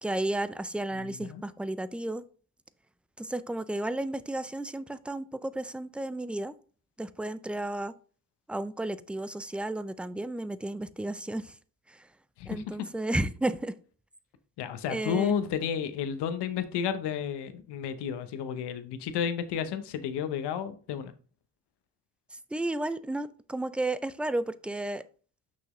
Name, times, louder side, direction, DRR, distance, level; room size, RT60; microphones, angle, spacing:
voice 1, 0.0-2.2 3.2-6.5 7.0-7.9 8.5-11.6 11.9-12.1 12.5-13.8 14.9-15.4 22.3-25.0, right 1 dB, 5° right, 0.4 m, -33 dB
voice 2, 0.9-1.4 12.4-12.7 14.6-21.1, left 8 dB, 90° left, 0.9 m, -32 dB
6.2 x 5.9 x 3.1 m
cardioid pair, 90°, 39 cm